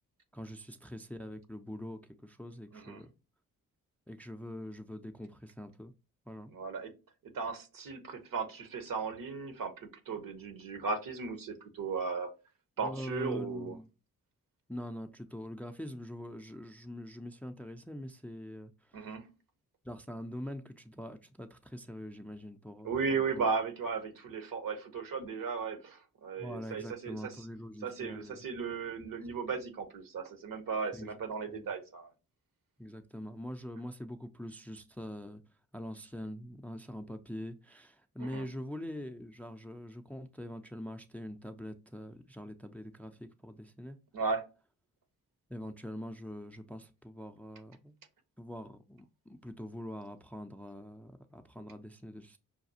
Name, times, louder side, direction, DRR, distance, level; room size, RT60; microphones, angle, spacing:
voice 1, 0.3-3.1 4.1-5.9 6.3-6.6 12.8-13.9 14.7-19.2 19.8-23.5 26.4-28.4 30.9-31.1 31.5-31.7 32.8-35.4 35.7-44.0 45.5-47.9 48.4-52.4, equal, 5° left, 0.5 m, -44 dB
voice 2, 6.5-6.9 7.3-12.3 12.8-13.8 18.9-19.2 22.8-27.3 27.8-32.1 38.2-38.4 44.1-44.4, right 5 dB, 60° right, 1.0 m, -36 dB
5.8 x 2.3 x 2.7 m
hypercardioid pair, 40°, 37 cm